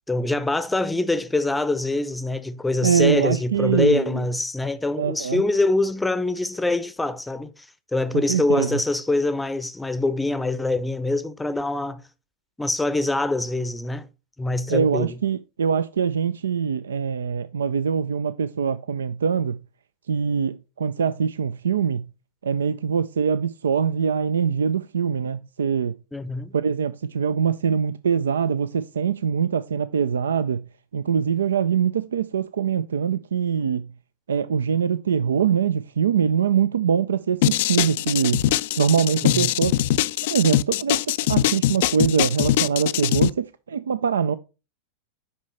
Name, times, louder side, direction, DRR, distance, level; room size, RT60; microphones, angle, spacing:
voice 1, 0.1-7.5 7.9-12.0 12.6-14.1 14.4-15.2 26.1-26.5 39.2-39.5, left 2 dB, 5° left, 0.6 m, -24 dB
voice 2, 2.8-4.2 5.0-5.4 8.1-8.7 14.7-19.6 20.1-22.1 22.4-25.9 26.5-30.7 30.9-33.9 34.3-38.5 38.8-39.8 40.3-41.0 41.3-44.3, right 7 dB, 75° right, 0.4 m, -23 dB
sound 1, 37.4-43.3, left 14 dB, 55° left, 0.3 m, -22 dB
8.4 x 5.5 x 4.2 m
figure-of-eight pair, 95°, 0 cm